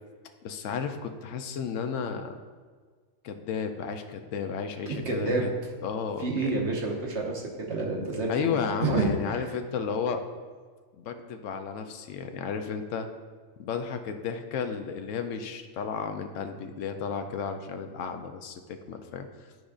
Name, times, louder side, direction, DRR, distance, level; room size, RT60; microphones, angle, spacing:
voice 1, 0.4-2.4 3.2-5.5 5.8-6.5 8.3-10.2 11.0-13.1 13.6-18.6 18.9-19.5, left 6 dB, 75° left, 7 dB, 0.9 m, -33 dB
voice 2, 4.9-5.5 6.2-8.5 8.8-9.4, right 3 dB, 60° right, -2 dB, 1.4 m, -29 dB
11.0 x 5.0 x 2.4 m, 1.5 s
omnidirectional pair, 1.3 m